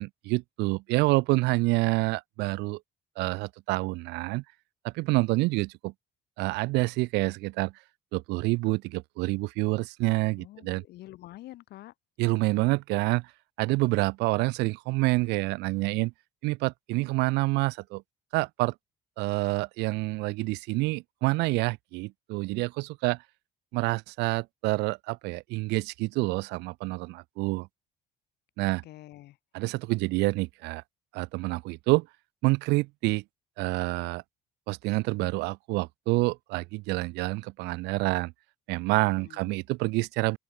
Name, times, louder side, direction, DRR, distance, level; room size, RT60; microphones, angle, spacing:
voice 1, 0.0-2.8 3.2-4.4 4.8-5.9 6.4-7.7 8.1-10.8 12.2-13.3 13.6-16.1 16.4-18.0 18.3-18.7 19.2-23.2 23.7-27.7 28.6-28.8 29.5-30.8 31.1-32.1 32.4-33.2 33.6-34.2 34.7-38.3 38.7-40.4, right 23 dB, 90° right, 0.4 m, -27 dB
voice 2, 10.4-11.9 28.8-29.4 39.0-39.6, left 16 dB, 75° left, 3.6 m, -47 dB
open air
cardioid pair, 110°, 17 cm